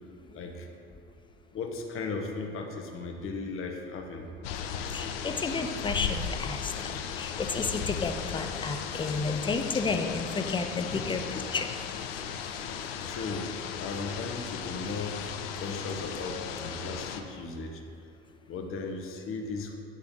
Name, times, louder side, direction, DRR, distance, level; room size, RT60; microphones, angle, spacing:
voice 1, 0.3-0.7 1.5-4.3 10.9-11.0 12.5-12.7 13.1-13.5 13.8-15.2 15.6-17.8 18.5-19.8, left 4 dB, 45° left, 3 dB, 1.1 m, -36 dB
sound 1, 4.4-17.2, left 7 dB, 75° left, 0.6 m, -36 dB
voice 2, 4.9-11.7, left 4 dB, 15° left, 6 dB, 0.6 m, -32 dB
9.7 x 3.4 x 5.3 m, 2.4 s
hypercardioid pair, 70°, 30 cm